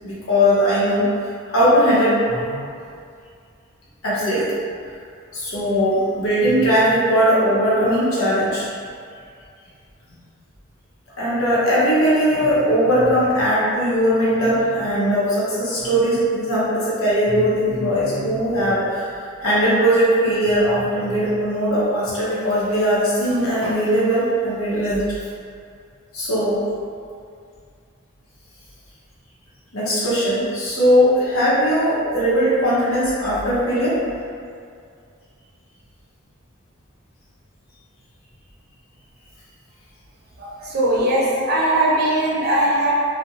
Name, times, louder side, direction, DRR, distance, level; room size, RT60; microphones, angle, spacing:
voice 1, 0.0-2.6 4.0-4.5 5.3-8.7 11.2-25.0 26.1-26.6 29.7-34.0, equal, 90° left, -8 dB, 0.8 m, -19 dB
voice 2, 40.4-42.9, right 1 dB, 50° right, -5 dB, 0.5 m, -20 dB
2.4 x 2.1 x 2.8 m, 2.3 s
head